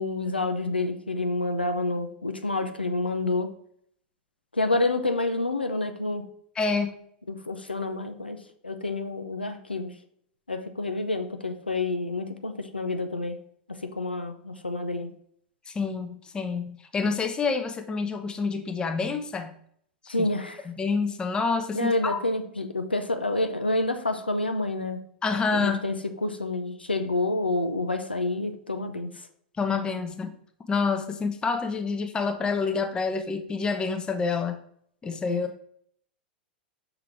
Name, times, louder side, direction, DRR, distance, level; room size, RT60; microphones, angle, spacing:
voice 1, 0.0-3.5 4.5-6.2 7.3-8.4 8.6-9.9 10.5-13.4 13.7-15.1 20.1-20.7 21.7-25.0 25.5-29.1 35.1-35.5, left 2 dB, 85° left, 7 dB, 0.6 m, -28 dB
voice 2, 6.6-7.0 15.7-19.6 20.2-20.3 20.7-22.2 25.2-25.8 29.6-30.3 30.7-34.6 35.0-35.6, left 4 dB, 15° left, 7 dB, 0.7 m, -28 dB
5.8 x 3.8 x 4.5 m, 0.65 s
figure-of-eight pair, 95°, 5 cm